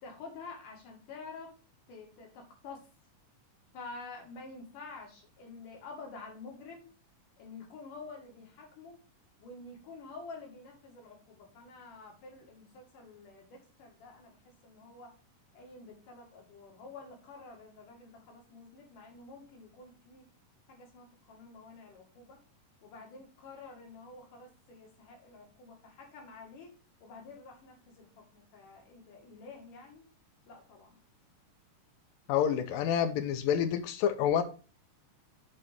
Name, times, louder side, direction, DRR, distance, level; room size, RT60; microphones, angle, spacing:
voice 1, 0.0-1.5 1.9-2.9 3.7-6.9 7.4-9.0 9.4-15.1 15.5-20.3 20.7-22.4 22.8-26.7 27.0-30.0 30.5-31.0, left 3 dB, 70° left, 3.6 m, -49 dB
voice 2, 32.3-34.4, left 9 dB, 85° left, 2.5 m, -28 dB
8.3 x 4.3 x 5.2 m
omnidirectional pair, 3.8 m